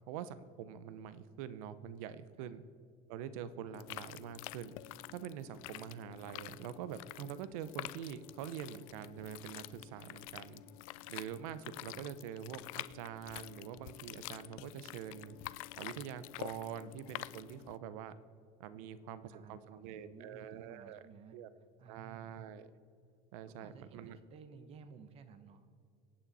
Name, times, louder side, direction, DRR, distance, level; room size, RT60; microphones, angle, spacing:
voice 1, 0.0-2.6 3.1-4.7 5.1-10.6 11.1-15.4 15.8-18.1 18.6-21.0 21.3-21.5 21.9-22.7 23.3-24.2, right 9 dB, 85° right, 14 dB, 0.9 m, -45 dB
sound 1, 3.7-17.8, left 18 dB, 85° left, 0.5 m, -48 dB
voice 2, 19.3-21.4 21.8-22.3 23.4-25.7, right 5 dB, 35° right, 10 dB, 1.1 m, -56 dB
25.0 x 8.8 x 4.2 m, 2.3 s
cardioid pair, 160°, 17 cm